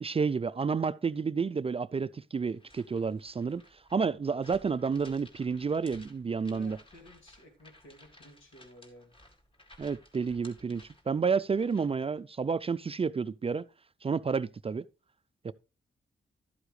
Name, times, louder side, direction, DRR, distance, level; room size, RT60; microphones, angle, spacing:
voice 1, 0.0-3.6 3.9-6.8 9.8-13.6 14.0-14.8 15.4-15.5, right 5 dB, 30° right, 0.4 m, -30 dB
sound 1, 2.5-12.0, left 1 dB, 25° left, 2.3 m, -57 dB
voice 2, 6.5-9.1, equal, 75° left, 2.7 m, -54 dB
12.0 x 8.1 x 3.2 m
cardioid pair, 60°, 20 cm